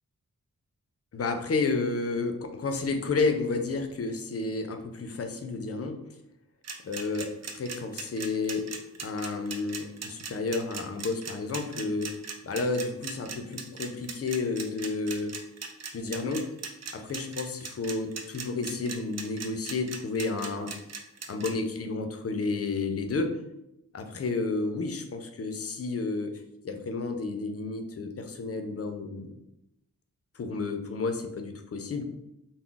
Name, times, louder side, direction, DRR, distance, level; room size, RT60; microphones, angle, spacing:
voice 1, 1.1-6.0 6.9-7.3 7.6-8.7 9.0-12.1 12.4-15.4 15.9-16.5 16.9-20.7 21.3-23.3 23.9-26.3 26.6-29.3 30.4-32.0, left 3 dB, 45° left, 6 dB, 0.4 m, -31 dB
sound 1, 6.6-21.5, right 5 dB, 50° right, 0.4 m, -38 dB
2.3 x 2.0 x 3.7 m, 0.86 s
wide cardioid pair, 85°, 35 cm